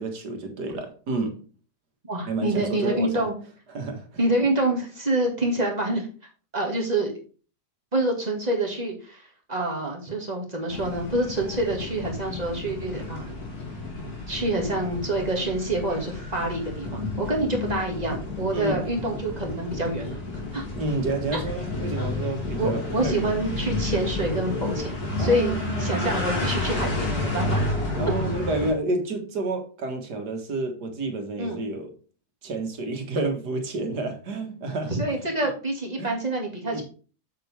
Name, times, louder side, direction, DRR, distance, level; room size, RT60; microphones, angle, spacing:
voice 1, 0.0-1.4 2.3-3.3 3.7-4.2 18.5-18.8 20.8-23.4 25.2-26.2 28.0-31.9 32.4-35.2 36.0-36.1 36.7-36.8, right 2 dB, 85° right, 2.2 m, -30 dB
voice 2, 2.1-3.3 4.2-6.1 6.5-7.1 7.9-13.3 14.3-20.1 20.5-20.6 22.6-27.6 31.4-31.6 34.9-36.8, right 1 dB, 25° right, 2.2 m, -27 dB
sound 1, 10.7-28.7, left 2 dB, 65° left, 3.0 m, -31 dB
7.7 x 7.6 x 3.5 m
omnidirectional pair, 1.7 m